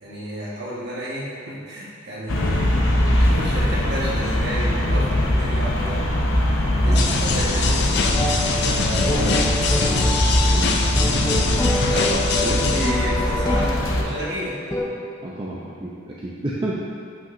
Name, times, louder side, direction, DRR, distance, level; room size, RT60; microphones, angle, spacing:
voice 1, 0.0-2.7 3.2-6.0 6.8-8.0 8.5-9.4 11.9-14.5, equal, 55° right, -6 dB, 1.5 m, -31 dB
sound 1, 2.3-14.0, left 1 dB, 90° left, 0.8 m, -22 dB
voice 2, 6.8-7.2 10.5-11.2 12.4-12.6 15.2-16.8, right 1 dB, 25° right, -6 dB, 0.5 m, -31 dB
sound 2, 7.0-12.9, left 4 dB, 55° left, 0.5 m, -24 dB
sound 3, 8.0-14.8, left 1 dB, 15° left, 0.7 m, -26 dB
8.3 x 5.7 x 2.6 m, 2.2 s
head